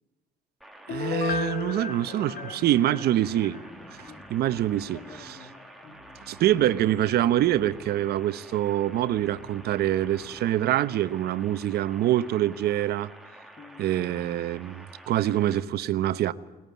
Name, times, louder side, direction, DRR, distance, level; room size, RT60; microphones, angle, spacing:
sound 1, 0.6-15.6, right 1 dB, ahead, 2.2 m, -49 dB
Piano, 0.9-3.6 4.0-4.1, left 7 dB, 55° left, 1.1 m, -33 dB
voice 1, 0.9-3.6 4.3-5.4 6.3-13.1 13.8-16.3, right 13 dB, 70° right, 1.0 m, -25 dB
voice 2, 2.1-6.0 13.6-13.8, left 4 dB, 40° left, 2.4 m, -49 dB
sound 2, 2.7-10.6, equal, 20° left, 2.6 m, -52 dB
21.5 x 20.0 x 9.5 m
cardioid pair, 110°, 17 cm